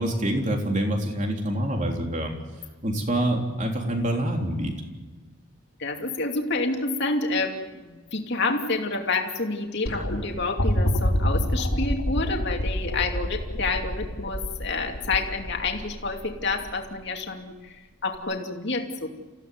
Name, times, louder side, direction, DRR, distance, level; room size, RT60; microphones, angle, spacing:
voice 1, 0.0-2.3 2.8-4.7, right 1 dB, 35° right, 1 dB, 3.6 m, -26 dB
voice 2, 5.8-19.1, left 3 dB, 55° left, 2 dB, 2.7 m, -29 dB
sound 1, 9.9-17.0 18.1-18.2, equal, 85° left, 4.1 m, -27 dB
28.0 x 16.0 x 9.4 m, 1.3 s
head